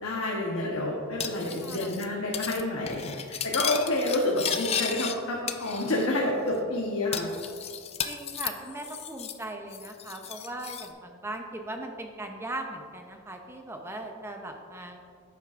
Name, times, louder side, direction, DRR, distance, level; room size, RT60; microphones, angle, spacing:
voice 1, 0.0-3.1 3.4-7.3, left 1 dB, 80° left, -2 dB, 1.0 m, -28 dB
Cutlery silverware, 1.2-2.1 2.3-2.6 2.9-5.2 5.5-6.2 6.5-6.6 7.1-9.4 9.7-10.9, left 8 dB, 30° left, 0.4 m, -34 dB
voice 2, 8.0-15.0, right 1 dB, 10° right, 3 dB, 0.7 m, -39 dB
10.5 x 8.1 x 2.5 m, 2.2 s
head